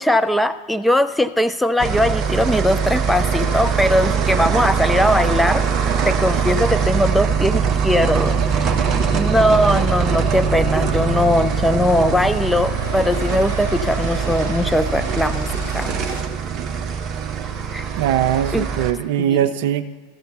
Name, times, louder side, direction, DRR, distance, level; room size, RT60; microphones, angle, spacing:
voice 1, 0.0-5.6 6.0-16.0 17.7-17.9 18.5-18.7 19.2-19.4, left 1 dB, 5° left, 9 dB, 0.4 m, -20 dB
sound 1, 1.8-18.9, right 6 dB, 30° right, 0.9 m, -22 dB
Waves surf, 10.3-16.2, left 2 dB, 75° left, 1.7 m, -33 dB
voice 2, 18.0-19.9, right 10 dB, 55° right, 11 dB, 0.5 m, -20 dB
14.0 x 6.6 x 4.0 m, 1.5 s
figure-of-eight pair, 85°, 0 cm